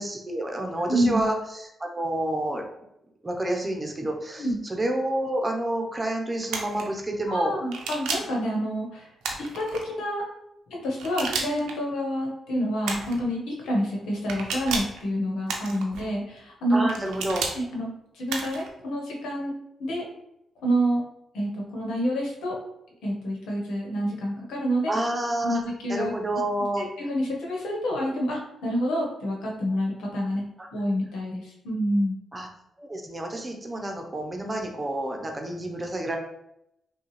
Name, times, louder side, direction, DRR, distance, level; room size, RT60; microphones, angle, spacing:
voice 1, 0.0-1.4 1.8-2.6 3.2-7.5 16.7-17.4 24.9-25.6 25.9-26.8 30.6-30.7 32.3-32.5 32.8-36.2, right 1 dB, 25° right, 2 dB, 0.9 m, -29 dB
voice 2, 0.9-1.2 4.4-4.6 7.3-9.1 9.4-10.3 10.7-16.9 17.5-19.5 19.8-20.1 20.6-21.0 21.3-22.6 23.0-24.9 25.4-26.1 26.8-30.4 30.7-32.2, equal, 85° left, -1 dB, 1.1 m, -28 dB
sound 1, 6.5-6.8 7.7-8.4 9.2-9.8 11.0-11.7 12.8-13.2 14.3-15.0 15.5-16.0 16.9-17.6 18.3-18.7, right 4 dB, 90° right, 0.6 m, -31 dB
5.5 x 2.4 x 3.2 m, 0.82 s
cardioid pair, 65°, 0 cm